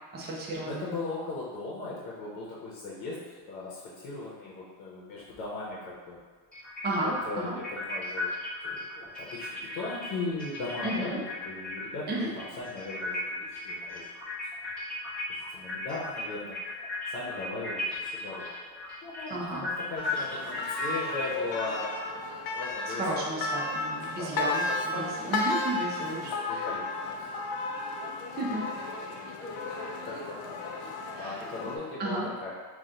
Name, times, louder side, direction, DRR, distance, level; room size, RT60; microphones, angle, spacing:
voice 1, 0.1-0.9 6.8-7.6 10.8-11.2 12.1-12.3 19.3-19.7 22.9-26.7 28.4-28.7 31.1-31.4 32.0-32.3, right 2 dB, 20° right, -4 dB, 0.5 m, -33 dB
voice 2, 0.6-6.2 7.0-8.3 8.6-14.1 15.3-16.6 17.1-18.5 19.0-21.9 22.5-23.4 23.8-25.3 26.0-27.2 30.1-30.9 31.1-32.6, left 3 dB, 80° left, -6 dB, 0.9 m, -38 dB
sound 1, 5.3-5.4 6.5-12.0 12.3-22.5, left 2 dB, ahead, 1.0 m, -36 dB
sound 2, 20.0-31.8, left 3 dB, 50° left, 0.5 m, -34 dB
4.1 x 2.4 x 2.4 m, 1.4 s
supercardioid pair, 115°, 49 cm